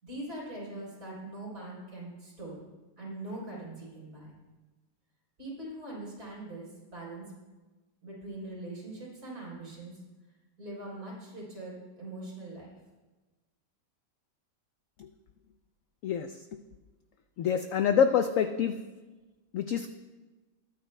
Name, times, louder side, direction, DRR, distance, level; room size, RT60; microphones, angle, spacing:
voice 1, 0.0-2.6 3.0-4.3 5.4-7.2 8.0-9.9 10.6-12.7, right 1 dB, 60° right, -5 dB, 4.6 m, -42 dB
voice 2, 17.4-18.7 19.5-19.9, left 7 dB, 75° left, 7 dB, 0.7 m, -26 dB
21.5 x 9.0 x 2.2 m, 1.2 s
omnidirectional pair, 1.9 m